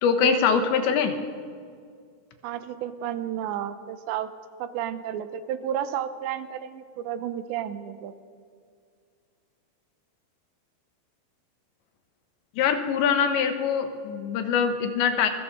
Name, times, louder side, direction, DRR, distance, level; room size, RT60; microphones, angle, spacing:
voice 1, 0.0-1.2 12.6-15.3, left 7 dB, 80° left, 7 dB, 3.6 m, -23 dB
voice 2, 2.4-4.3 4.6-8.1, right 10 dB, 85° right, 11 dB, 3.1 m, -31 dB
27.0 x 20.5 x 5.1 m, 2.1 s
omnidirectional pair, 5.2 m